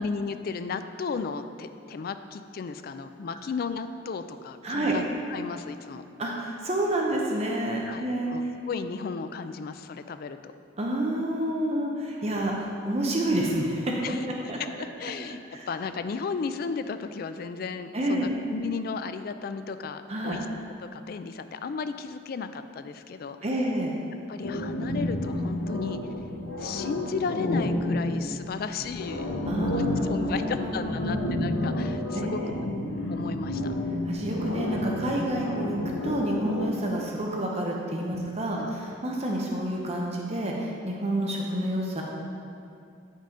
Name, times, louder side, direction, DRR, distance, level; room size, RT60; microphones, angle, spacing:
voice 1, 0.0-5.0 5.3-6.1 7.9-10.5 14.0-14.2 14.8-15.4 15.7-20.4 20.9-23.4 24.3-26.0 26.6-29.3 29.7-32.6 33.1-33.7 38.5-38.7, left 5 dB, 50° left, 10 dB, 0.3 m, -34 dB
voice 2, 4.6-5.0 6.2-8.5 10.8-14.0 14.3-14.6 15.5-15.7 17.9-18.3 20.1-20.4 23.4-23.9 29.5-31.2 32.2-32.4 34.0-35.8 36.0-42.0, right 1 dB, 35° right, -1 dB, 0.7 m, -29 dB
sound 1, 24.4-36.7, left 1 dB, 80° left, 0.7 m, -30 dB
8.8 x 5.4 x 3.8 m, 2.4 s
head